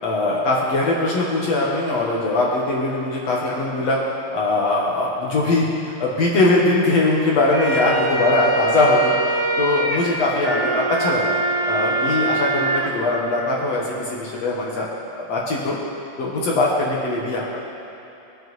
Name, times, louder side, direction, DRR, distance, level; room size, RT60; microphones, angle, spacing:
voice 1, 0.0-4.0 4.3-14.9 15.3-15.8 16.2-17.6, left 2 dB, 65° left, -4 dB, 1.7 m, -21 dB
sound 1, 7.3-12.9, right 2 dB, 75° right, 1.8 m, -23 dB
21.5 x 7.6 x 3.1 m, 2.9 s
omnidirectional pair, 4.6 m